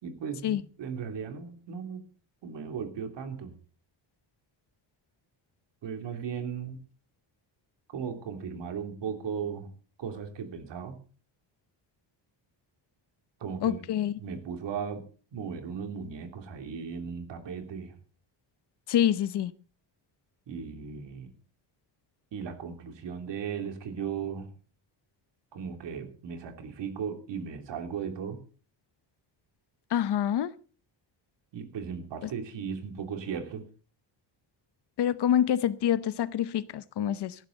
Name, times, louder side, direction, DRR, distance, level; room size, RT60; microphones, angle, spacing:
voice 1, 0.0-2.1 2.4-3.6 5.8-6.8 7.9-9.7 10.0-10.9 13.4-13.8 14.2-15.0 15.3-18.0 20.5-21.3 22.3-24.5 25.5-28.4 31.5-33.6, right 6 dB, 65° right, 3.1 m, -36 dB
voice 2, 13.6-14.1 18.9-19.5 29.9-30.5 35.0-37.4, left 10 dB, 60° left, 0.9 m, -26 dB
17.5 x 14.5 x 4.0 m
wide cardioid pair, 180°, 46 cm